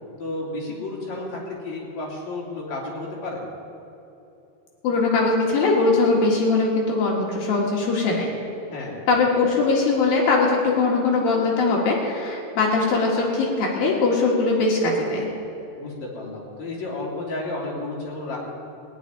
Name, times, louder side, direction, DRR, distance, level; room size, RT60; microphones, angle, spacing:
voice 1, 0.2-3.4 8.7-9.0 15.8-18.4, left 2 dB, 45° left, -4 dB, 4.0 m, -32 dB
voice 2, 4.8-8.3 9.1-15.3, left 3 dB, 65° left, -2 dB, 3.3 m, -21 dB
18.5 x 6.5 x 9.7 m, 2.9 s
omnidirectional pair, 4.9 m